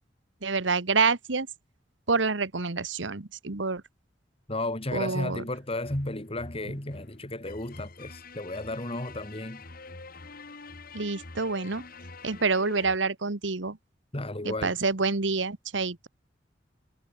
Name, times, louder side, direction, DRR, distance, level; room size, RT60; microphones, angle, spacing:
voice 1, 0.4-1.5 2.1-3.8 4.9-5.4 10.9-11.8 12.2-13.8 14.4-16.1, right 4 dB, 85° right, 1.5 m, -27 dB
voice 2, 4.5-9.6 14.1-14.7, left 2 dB, 30° left, 3.2 m, -33 dB
sound 1, 5.8-13.0, left 3 dB, 55° left, 2.7 m, -46 dB
head